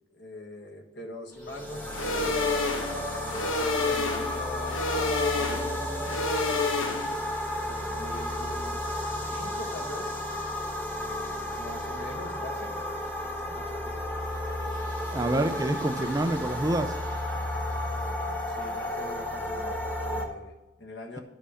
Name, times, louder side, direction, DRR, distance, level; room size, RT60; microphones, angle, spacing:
voice 1, 0.1-2.4 3.2-6.6 7.6-10.2 11.5-14.2 18.5-21.2, left 1 dB, 60° left, 2 dB, 1.4 m, -43 dB
sound 1, 1.3-20.2, left 1 dB, 10° left, 1.2 m, -33 dB
sound 2, 1.9-7.3, left 3 dB, 90° left, 1.0 m, -29 dB
voice 2, 15.1-17.0, right 1 dB, 15° right, 8 dB, 0.4 m, -27 dB
11.0 x 5.5 x 6.3 m, 1.1 s
head